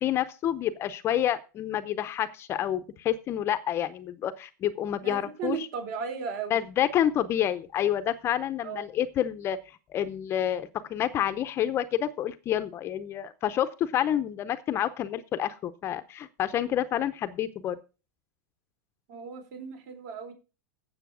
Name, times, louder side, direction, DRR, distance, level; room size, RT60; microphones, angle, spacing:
voice 1, 0.0-5.7 6.5-9.6 9.9-17.8, left 11 dB, 25° left, 12 dB, 0.6 m, -28 dB
voice 2, 5.0-6.6 8.6-8.9 19.1-20.3, right 7 dB, 55° right, 5 dB, 4.0 m, -36 dB
9.2 x 7.4 x 6.1 m, 0.32 s
supercardioid pair, 150°, 9 cm